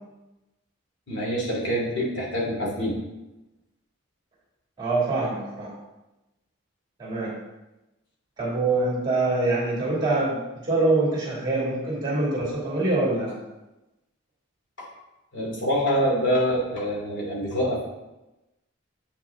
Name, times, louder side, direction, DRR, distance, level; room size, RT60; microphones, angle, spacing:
voice 1, 1.1-3.0 14.8-14.9 15.3-17.8, equal, 60° left, -4 dB, 2.7 m, -25 dB
voice 2, 4.8-5.7 7.0-7.3 8.4-13.3, right 2 dB, 20° right, -5 dB, 2.7 m, -24 dB
8.2 x 5.7 x 3.7 m, 1.0 s
head